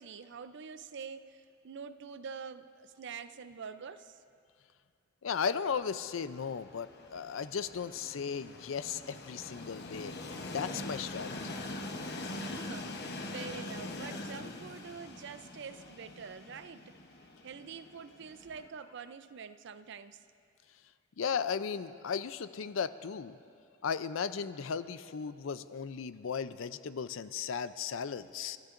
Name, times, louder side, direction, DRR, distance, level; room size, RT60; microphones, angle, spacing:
voice 1, 0.0-4.2 12.4-17.0 17.4-20.2, right 6 dB, 65° right, 11 dB, 0.5 m, -46 dB
voice 2, 5.2-11.6 21.2-23.4 23.8-28.6, left 6 dB, 85° left, 13 dB, 0.5 m, -36 dB
Train, 5.7-18.7, left 2 dB, 55° left, 1.0 m, -43 dB
30.0 x 13.5 x 2.6 m, 2.4 s
head